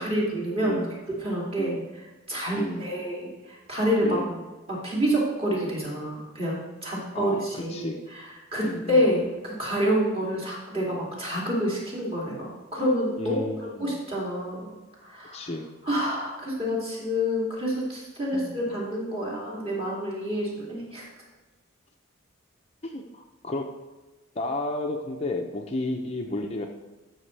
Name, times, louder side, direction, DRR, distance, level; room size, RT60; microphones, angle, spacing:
voice 1, 0.0-0.8 1.1-1.8 2.3-4.2 4.7-14.7 15.0-15.5 15.8-21.1, equal, 25° right, -5 dB, 2.7 m, -28 dB
voice 2, 0.6-1.0 1.6-1.9 2.6-2.9 4.0-4.4 7.1-8.0 8.6-9.0 13.2-13.9 15.3-15.7 18.3-18.6 22.8-23.7 24.4-26.7, left 2 dB, 30° left, 2 dB, 0.6 m, -32 dB
12.5 x 6.3 x 3.3 m, 1.2 s
head